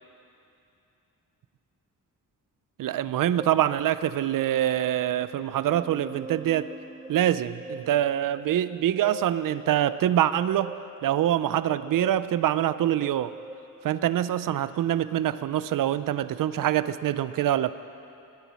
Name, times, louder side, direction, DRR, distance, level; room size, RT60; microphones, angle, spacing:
voice 1, 2.8-6.7 7.1-10.7 11.0-13.3 13.8-17.7, right 11 dB, 70° right, 14 dB, 0.5 m, -25 dB
sound 1, 3.4-13.5, right 2 dB, 10° right, 0.7 m, -44 dB
20.5 x 7.0 x 7.5 m, 2.7 s
wide cardioid pair, 145°, 34 cm